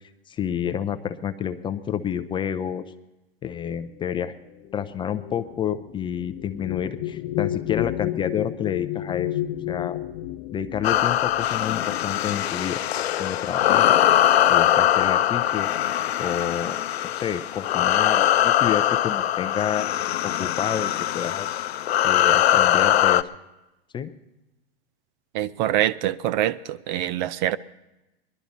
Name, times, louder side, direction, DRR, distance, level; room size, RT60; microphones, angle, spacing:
voice 1, 0.3-2.8 3.4-4.3 4.7-9.3 9.7-10.0 10.5-12.8 13.2-14.0 14.5-15.7 16.2-16.8 17.1-19.9 20.2-21.6 22.0-23.3 23.9-24.1, left 8 dB, 15° left, 0.4 m, -29 dB
sound 1, 3.9-12.8 13.7-13.9 14.2-14.8, left 14 dB, 40° left, 0.8 m, -32 dB
sound 2, 10.8-23.2, left 12 dB, 85° left, 0.6 m, -22 dB
voice 2, 25.3-27.6, right 12 dB, 45° right, 0.5 m, -25 dB
20.0 x 12.0 x 4.1 m
hypercardioid pair, 120°, 31 cm